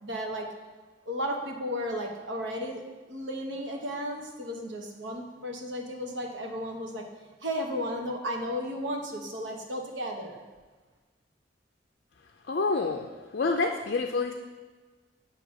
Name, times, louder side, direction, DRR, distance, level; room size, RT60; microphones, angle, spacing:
voice 1, 0.0-0.5 1.1-7.0 7.4-10.4, equal, 70° right, 2 dB, 1.0 m, -34 dB
voice 2, 12.5-14.3, left 3 dB, 55° left, 3 dB, 0.4 m, -28 dB
8.7 x 2.9 x 6.1 m, 1.4 s
head